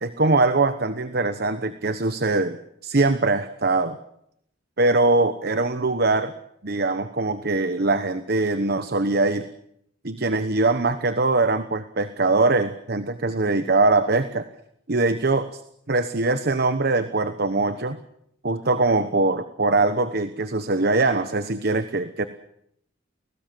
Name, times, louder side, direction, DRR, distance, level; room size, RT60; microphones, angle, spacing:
voice 1, 0.0-2.6 2.8-4.0 4.8-6.3 6.6-9.5 10.0-14.5 14.9-15.6 15.9-18.0 18.4-22.3, right 3 dB, 55° right, 11 dB, 1.1 m, -22 dB
29.5 x 19.0 x 7.6 m, 0.76 s
head